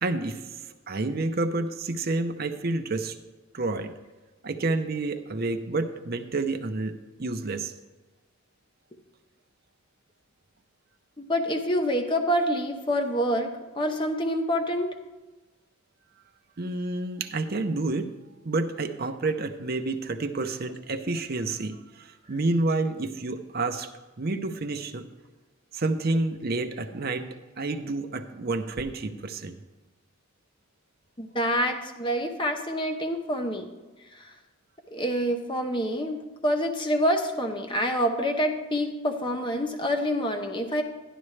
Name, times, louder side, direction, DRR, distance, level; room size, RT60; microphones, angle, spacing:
voice 1, 0.0-3.2 3.5-3.9 4.4-7.7 16.6-18.1 18.4-23.9 24.2-25.0 25.7-27.3 27.6-29.6, right 2 dB, 45° right, 7 dB, 0.6 m, -29 dB
voice 2, 11.2-14.9 31.2-33.7 34.2-34.3 34.9-40.8, equal, 20° left, 4 dB, 0.7 m, -27 dB
12.0 x 11.0 x 3.2 m, 1.2 s
head